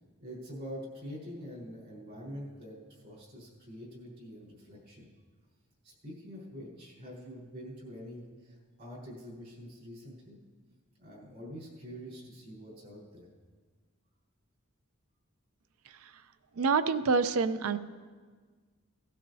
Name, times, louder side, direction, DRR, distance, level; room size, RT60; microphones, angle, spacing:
voice 1, 0.2-5.1 5.8-10.4 11.0-13.3, equal, 55° right, -4 dB, 4.1 m, -45 dB
voice 2, 16.6-17.8, right 4 dB, 85° right, 13 dB, 0.5 m, -27 dB
17.5 x 12.5 x 2.7 m, 1.5 s
head